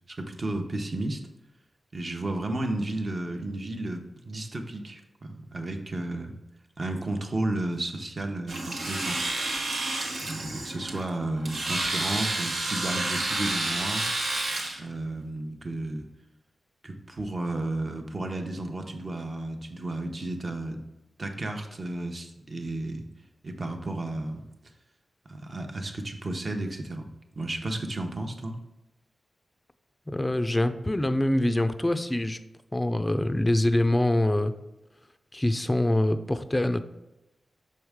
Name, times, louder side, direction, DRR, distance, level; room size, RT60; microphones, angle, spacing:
voice 1, 0.1-1.2 1.9-6.3 6.8-9.3 10.2-14.1 14.8-16.1 16.8-20.8 21.2-23.1 23.4-24.4 25.3-27.1 27.3-28.6, right 2 dB, 40° right, 4 dB, 0.9 m, -33 dB
Domestic sounds home sounds, 8.5-14.8, right 2 dB, 75° right, 1.1 m, -30 dB
voice 2, 30.1-32.4 32.7-34.5 35.3-36.8, left 1 dB, 15° left, 10 dB, 0.4 m, -24 dB
6.4 x 4.7 x 3.5 m, 0.96 s
wide cardioid pair, 80°, 0 cm